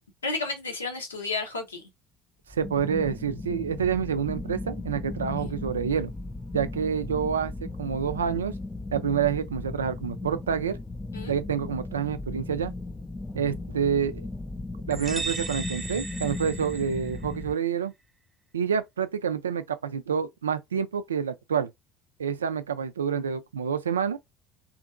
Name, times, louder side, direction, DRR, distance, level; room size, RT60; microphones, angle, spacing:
voice 1, 0.2-1.8 5.4-5.6 11.1-11.3, left 3 dB, 90° left, 0.8 m, -32 dB
sound 1, 2.5-17.5, left 2 dB, 15° left, 0.3 m, -37 dB
voice 2, 2.5-6.1 6.5-8.6 8.9-10.8 11.3-12.7 13.3-14.3 14.9-17.9 18.5-21.7 22.2-24.2, right 7 dB, 85° right, 0.3 m, -28 dB
sound 2, 14.9-17.5, right 3 dB, 20° right, 0.7 m, -36 dB
2.8 x 2.5 x 2.3 m
hypercardioid pair, 65°, 0 cm